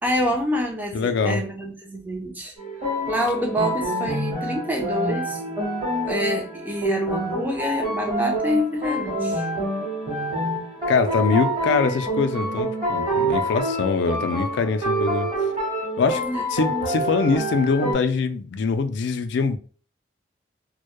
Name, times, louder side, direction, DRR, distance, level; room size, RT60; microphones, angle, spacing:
voice 1, 0.0-2.5 3.1-5.4 6.0-9.5 16.1-16.5, equal, 10° right, 0.4 m, -27 dB
voice 2, 0.9-1.4 10.9-15.3 16.0-16.2 16.5-19.6, left 4 dB, 70° left, 0.3 m, -23 dB
sound 1, 2.6-17.9, right 1 dB, 25° right, 1.0 m, -26 dB
2.1 x 2.0 x 2.9 m
head